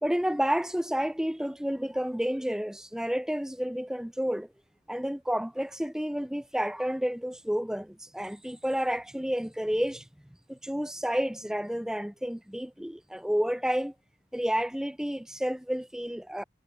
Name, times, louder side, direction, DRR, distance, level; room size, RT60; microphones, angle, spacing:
voice 1, 0.0-4.5 4.9-10.1 10.5-13.9 14.3-16.4, equal, 5° right, 0.7 m, -30 dB
head